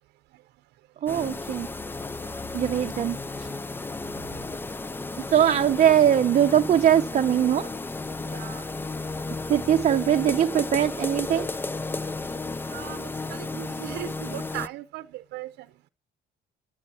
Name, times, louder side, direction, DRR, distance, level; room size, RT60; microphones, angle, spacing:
voice 1, 1.0-1.7 2.5-3.5 5.2-7.7 9.5-11.5, right 10 dB, 45° right, 0.7 m, -21 dB
sound 1, 1.1-14.7, left 3 dB, 10° left, 0.5 m, -33 dB
voice 2, 2.2-2.6 8.3-8.7 12.7-15.9, right 15 dB, 80° right, 0.7 m, -39 dB
13.0 x 9.8 x 4.3 m
cardioid pair, 110°, 17 cm